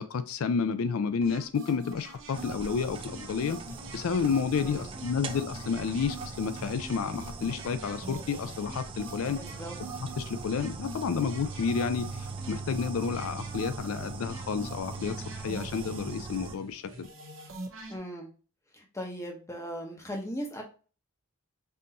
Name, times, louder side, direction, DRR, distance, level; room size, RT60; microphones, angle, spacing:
voice 1, 0.0-3.6 3.9-9.4 9.8-9.9 10.2-17.1, left 6 dB, 75° left, 0.4 m, -30 dB
sound 1, 1.2-18.0, right 2 dB, 60° right, 0.9 m, -45 dB
sound 2, 2.3-16.5, right 4 dB, 25° right, 0.3 m, -40 dB
voice 2, 4.6-4.9 9.2-9.8 17.9-18.3 18.7-20.6, equal, 15° left, 0.8 m, -38 dB
5.5 x 2.6 x 2.8 m
head